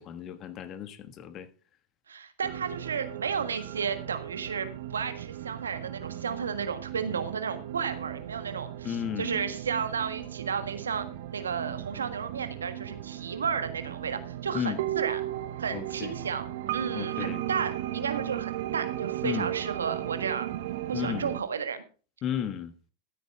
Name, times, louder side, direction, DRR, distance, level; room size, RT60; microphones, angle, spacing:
voice 1, 0.0-1.5 8.8-9.4 14.5-14.8 15.7-16.1 16.9-17.4 19.2-19.5 20.9-21.3 22.2-22.7, left 9 dB, 40° left, 1.4 m, -34 dB
voice 2, 2.1-11.1 11.3-15.2 15.6-16.5 16.7-20.5 20.9-21.8, right 6 dB, 85° right, 1.5 m, -33 dB
sound 1, 2.4-21.4, right 13 dB, 65° right, 1.0 m, -36 dB
14.0 x 8.6 x 3.5 m
hypercardioid pair, 95°, 0 cm